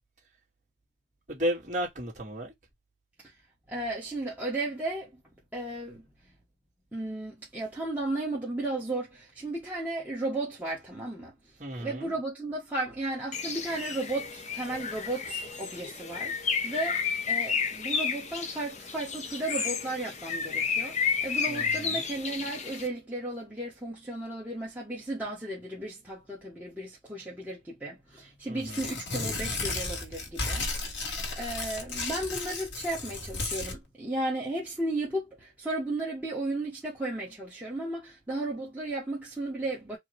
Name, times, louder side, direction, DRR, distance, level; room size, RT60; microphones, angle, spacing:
voice 1, 1.3-2.5 11.6-12.1 21.5-22.0 28.5-28.8, equal, 40° right, 1.9 m, -33 dB
voice 2, 3.7-5.2 5.5-6.1 6.9-11.3 11.8-17.0 17.3-40.0, right 2 dB, 10° right, 1.3 m, -34 dB
Bird, 13.3-22.9, left 6 dB, 40° left, 0.7 m, -32 dB
Tearing, 28.6-33.8, left 3 dB, 85° left, 1.7 m, -34 dB
4.6 x 2.4 x 3.1 m
head